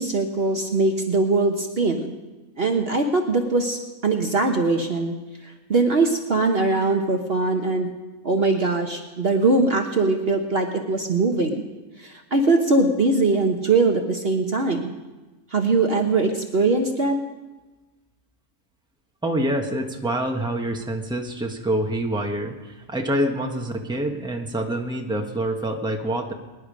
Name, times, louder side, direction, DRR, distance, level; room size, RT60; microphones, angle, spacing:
voice 1, 0.0-2.1 2.6-5.1 5.7-7.9 8.2-11.6 12.0-14.9 15.5-17.2, right 3 dB, 45° right, 3 dB, 1.2 m, -21 dB
voice 2, 19.2-26.3, right 1 dB, 5° right, 2 dB, 1.3 m, -26 dB
23.5 x 10.5 x 5.2 m, 1.2 s
omnidirectional pair, 1.5 m